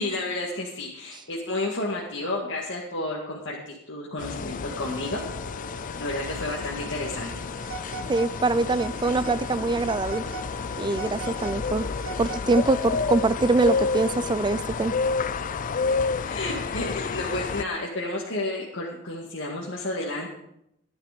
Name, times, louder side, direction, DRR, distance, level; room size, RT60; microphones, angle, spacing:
voice 1, 0.0-5.2 6.0-7.3 16.2-20.3, left 2 dB, 60° left, -3 dB, 2.1 m, -31 dB
sound 1, 4.2-17.6, left 5 dB, 40° left, 0.4 m, -30 dB
Wind instrument woodwind instrument, 4.3-17.0, left 2 dB, 10° left, 2.2 m, -43 dB
Telephone, 7.6-8.3 8.7-9.4 9.8-10.5 10.9-12.9, right 6 dB, 85° right, 1.6 m, -39 dB
voice 2, 8.1-10.2 10.8-11.9 12.2-14.9, right 3 dB, 20° right, 15 dB, 0.4 m, -24 dB
15.5 x 10.5 x 5.2 m, 0.78 s
head